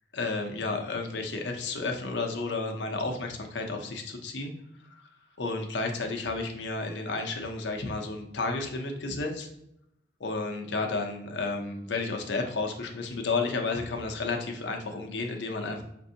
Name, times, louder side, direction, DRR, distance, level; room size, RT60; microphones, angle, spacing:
voice 1, 0.1-4.5 4.9-5.0 5.4-9.5 10.2-15.8, left 3 dB, 75° left, 3 dB, 0.7 m, -32 dB
5.2 x 2.6 x 2.6 m, 0.80 s
head